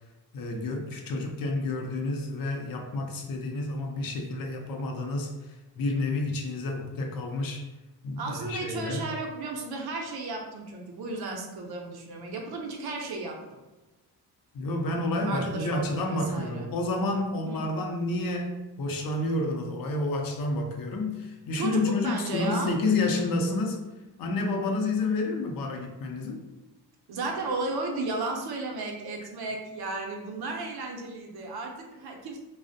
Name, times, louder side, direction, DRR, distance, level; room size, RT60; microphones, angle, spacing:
voice 1, 0.3-7.6 8.0-9.1 14.5-23.8 24.2-26.4, left 2 dB, 60° left, 3 dB, 0.5 m, -29 dB
voice 2, 8.2-13.6 15.2-16.7 17.5-17.7 21.5-22.7 27.1-32.4, right 3 dB, 65° right, 1 dB, 0.6 m, -34 dB
2.4 x 2.0 x 2.5 m, 1.1 s
wide cardioid pair, 125°, 40 cm